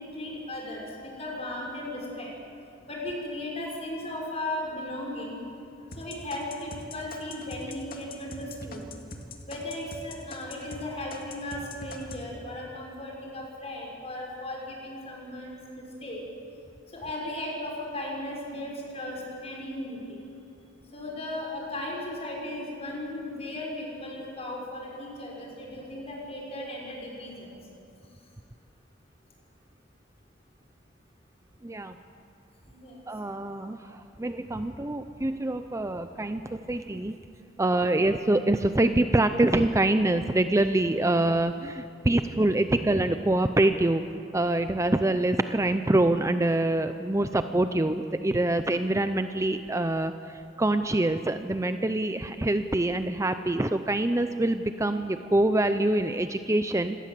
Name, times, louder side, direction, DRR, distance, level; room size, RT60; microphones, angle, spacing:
voice 1, 0.0-2.3 2.9-5.4 6.0-8.8 9.5-16.2 16.9-20.2 20.9-27.6 32.7-32.9 33.4-33.5, left 1 dB, 35° left, -2 dB, 6.0 m, -36 dB
sound 1, 5.9-10.8 11.1-12.2, left 3 dB, 50° left, 2.3 m, -42 dB
voice 2, 31.6-31.9 33.1-37.1 37.6-44.0 44.3-57.0, right 1 dB, 15° right, 9 dB, 0.6 m, -25 dB
26.0 x 18.5 x 7.6 m, 2.6 s
head